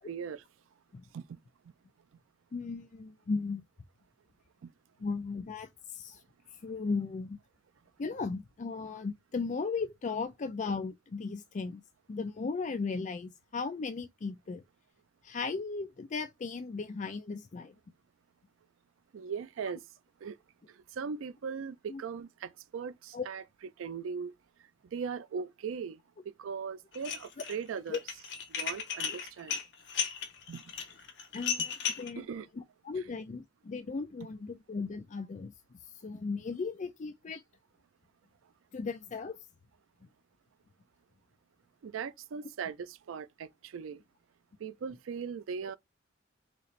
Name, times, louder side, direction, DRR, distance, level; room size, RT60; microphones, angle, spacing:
voice 1, 0.1-0.4 1.1-1.4 4.6-4.7 19.1-19.8 20.2-20.4 20.7-23.4 23.8-24.3 24.9-26.0 26.3-28.0 28.5-29.6 30.5-30.6 31.6-31.7 32.2-32.5 32.9-33.1 41.8-44.0 44.6-45.8, right 6 dB, 90° right, 0.4 m, -39 dB
voice 2, 2.5-3.6 5.0-5.7 6.0-6.2 6.6-7.4 8.0-11.8 12.1-14.6 15.2-17.7 21.9-22.0 23.1-23.2 27.9-28.0 29.1-29.2 31.3-31.7 32.0-32.2 32.8-35.5 36.0-37.4 38.7-39.4, left 4 dB, 40° left, 0.4 m, -36 dB
Dishes pots and pans, 26.9-27.5 27.9-32.1, left 7 dB, 60° left, 1.1 m, -35 dB
4.1 x 2.5 x 3.1 m
head